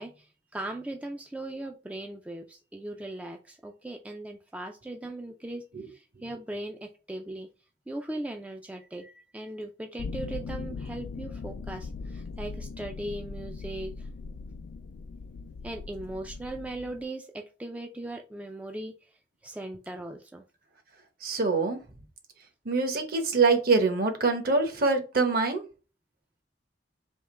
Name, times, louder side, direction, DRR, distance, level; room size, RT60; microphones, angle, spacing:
voice 1, 0.0-7.5 7.9-14.1 15.6-19.1 19.4-20.4, right 1 dB, 10° right, 3 dB, 0.3 m, -39 dB
sound 1, 10.0-17.0, left 4 dB, 85° left, 0.3 m, -39 dB
voice 2, 21.2-21.8 22.6-25.6, right 4 dB, 55° right, 6 dB, 0.9 m, -24 dB
3.5 x 2.9 x 4.2 m, 0.33 s
head